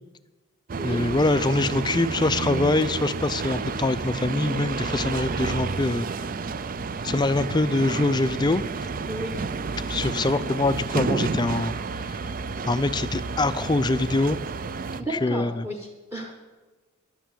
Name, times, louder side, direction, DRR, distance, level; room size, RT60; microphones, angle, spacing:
sound 1, 0.7-15.0, right 4 dB, 40° right, 0.4 m, -30 dB
voice 1, 0.8-6.1 7.0-8.6 9.9-11.7 12.1-12.2 12.7-14.4 15.1-15.7, left 2 dB, 20° left, 14 dB, 0.4 m, -24 dB
voice 2, 9.1-9.4 15.0-16.4, right 1 dB, 10° right, 3 dB, 1.1 m, -33 dB
11.0 x 9.4 x 8.4 m, 1.2 s
head